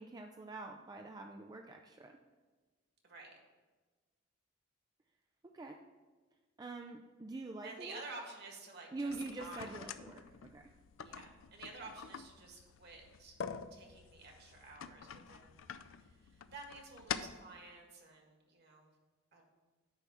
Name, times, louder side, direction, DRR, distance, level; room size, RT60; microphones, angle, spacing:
voice 1, 0.0-2.2 5.4-5.8 6.6-8.0 8.9-10.7, right 2 dB, 20° right, 3 dB, 0.3 m, -45 dB
voice 2, 3.0-3.4 7.6-9.7 11.0-13.3 13.7-18.9 19.3-19.4, right 3 dB, 55° right, 1 dB, 1.7 m, -51 dB
sound 1, 9.1-17.5, left 7 dB, 70° left, 0.4 m, -47 dB
9.9 x 3.4 x 7.1 m, 1.3 s
head